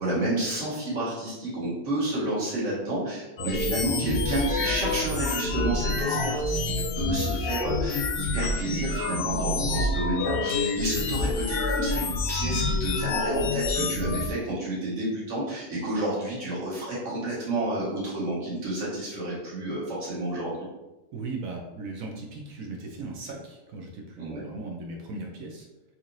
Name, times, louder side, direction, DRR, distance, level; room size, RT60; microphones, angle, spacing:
voice 1, 0.0-20.7 24.2-24.5, right 1 dB, 65° right, -7 dB, 1.7 m, -30 dB
sound 1, 3.4-14.3, left 3 dB, 60° left, 0.6 m, -27 dB
voice 2, 21.1-25.7, right 3 dB, 80° right, 0 dB, 1.1 m, -38 dB
4.0 x 3.1 x 2.6 m, 1.0 s
omnidirectional pair, 1.4 m